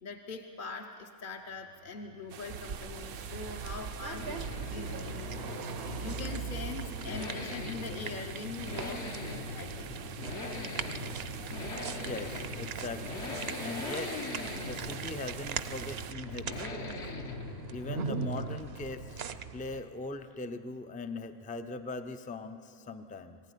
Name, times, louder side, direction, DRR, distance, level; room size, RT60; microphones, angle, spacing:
voice 1, 0.0-10.3, left 4 dB, 45° left, 3 dB, 0.9 m, -43 dB
sound 1, 1.5-19.6, left 3 dB, 65° left, 1.6 m, -42 dB
sound 2, 2.3-16.1, right 8 dB, 85° right, 1.1 m, -46 dB
sound 3, 2.5-19.8, right 6 dB, 60° right, 0.9 m, -41 dB
voice 2, 12.0-13.3 13.6-14.2 14.6-16.9 17.7-19.2 19.5-23.4, left 2 dB, 10° left, 9 dB, 0.4 m, -40 dB
22.0 x 15.5 x 9.9 m, 2.9 s
omnidirectional pair, 1.3 m